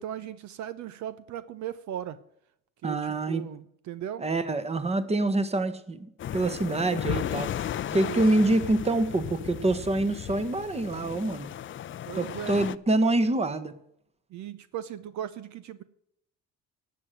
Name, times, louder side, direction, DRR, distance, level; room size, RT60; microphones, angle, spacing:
voice 1, 0.0-2.2 2.8-4.3 7.9-8.2 12.1-12.6 14.3-15.8, right 10 dB, 60° right, 15 dB, 0.8 m, -37 dB
voice 2, 2.8-3.5 4.2-7.5 7.9-11.5 12.1-13.7, right 2 dB, 20° right, 13 dB, 1.3 m, -26 dB
sound 1, 6.2-12.8, left 10 dB, 40° left, 0.6 m, -35 dB
12.0 x 7.7 x 9.2 m, 0.77 s
cardioid pair, 100°, 32 cm